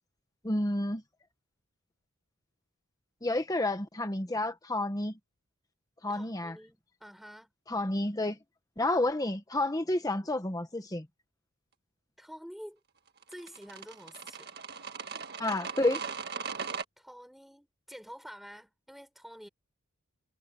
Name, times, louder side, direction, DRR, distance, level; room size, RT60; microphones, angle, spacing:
voice 1, 0.4-1.0 3.2-5.2 6.0-6.6 7.7-8.4 8.8-11.1 15.4-16.0, left 1 dB, 15° left, 1.2 m, -30 dB
voice 2, 6.1-7.5 12.2-12.8 13.3-14.5 17.0-19.5, equal, ahead, 5.5 m, -48 dB
sound 1, 13.2-16.8, right 5 dB, 50° right, 1.8 m, -39 dB
head